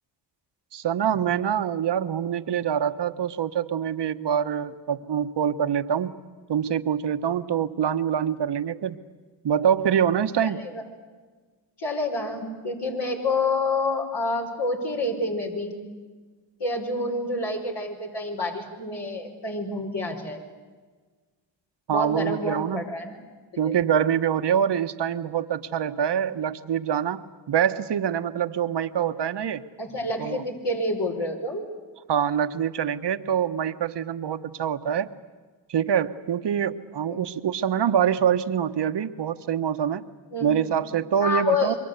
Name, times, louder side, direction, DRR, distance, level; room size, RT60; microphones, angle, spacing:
voice 1, 0.7-6.1 6.5-9.0 9.4-10.6 21.9-22.8 23.6-29.6 30.2-30.4 32.1-35.1 35.7-40.0 40.4-41.7, right 8 dB, 60° right, 10 dB, 1.3 m, -25 dB
voice 2, 10.4-10.8 11.8-15.8 16.6-20.4 21.9-23.2 23.6-23.7 29.8-31.6 37.1-37.2 40.3-40.7 41.2-41.8, left 2 dB, 60° left, 0 dB, 5.6 m, -28 dB
27.0 x 23.0 x 8.3 m, 1.4 s
cardioid pair, 60°, 46 cm